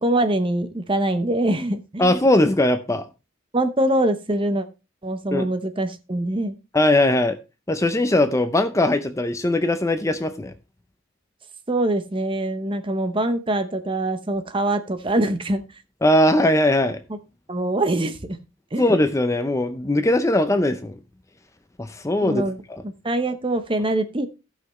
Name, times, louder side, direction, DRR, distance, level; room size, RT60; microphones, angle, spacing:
voice 1, 0.0-2.1 3.5-4.7 5.0-6.5 11.7-15.6 17.5-18.4 18.7-18.9 22.2-22.6 22.8-24.3, right 1 dB, 25° right, 0.8 m, -23 dB
voice 2, 2.0-3.0 5.3-5.5 6.7-7.4 7.7-10.5 16.0-17.0 18.8-20.9 21.8-22.4 22.7-22.8, left 1 dB, 15° left, 0.6 m, -20 dB
16.0 x 5.8 x 3.1 m
head